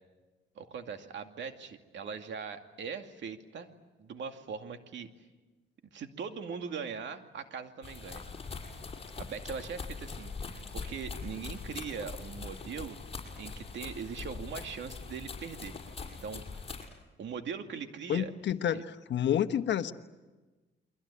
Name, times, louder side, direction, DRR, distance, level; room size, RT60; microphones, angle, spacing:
voice 1, 0.6-3.7 4.0-5.1 5.9-8.2 9.2-13.0 13.4-15.7 16.0-16.7 17.2-18.3 18.7-18.8, right 6 dB, 65° right, 6 dB, 2.4 m, -41 dB
sound 1, 7.8-16.9, left 4 dB, 30° left, 5.9 m, -42 dB
voice 2, 18.1-19.9, left 10 dB, 65° left, 10 dB, 1.3 m, -29 dB
29.5 x 23.0 x 8.7 m, 1.2 s
cardioid pair, 90°, 20 cm